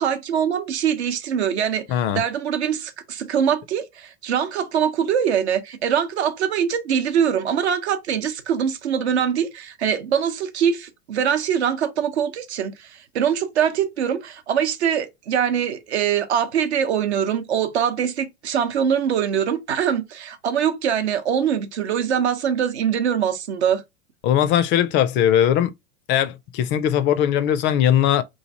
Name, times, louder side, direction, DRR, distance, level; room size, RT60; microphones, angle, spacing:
voice 1, 0.0-23.8, right 8 dB, 75° right, 0.8 m, -23 dB
voice 2, 1.9-2.2 24.2-25.7 26.1-28.2, left 10 dB, 35° left, 0.4 m, -19 dB
3.1 x 2.4 x 2.6 m
hypercardioid pair, 90°, 34 cm